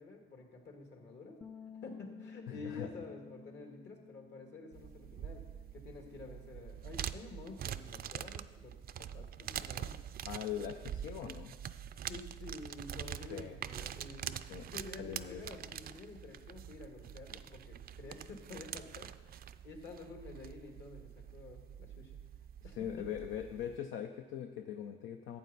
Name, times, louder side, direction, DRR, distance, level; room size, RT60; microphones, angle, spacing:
voice 1, 0.0-1.4 1.8-5.5 5.7-9.9 12.1-14.4 14.7-22.2 22.6-22.8, left 3 dB, 65° left, 2 dB, 2.0 m, -50 dB
Bass guitar, 1.4-7.6, left 5 dB, 10° left, 0.5 m, -54 dB
voice 2, 2.5-2.9 10.2-11.5 13.3-13.6 14.5-14.7 15.0-15.4 22.8-25.4, left 9 dB, 85° left, 5 dB, 0.6 m, -41 dB
sound 1, 4.7-23.8, right 9 dB, 50° right, 0.4 m, -45 dB
12.0 x 8.3 x 4.0 m, 1.4 s
cardioid pair, 90°, 20 cm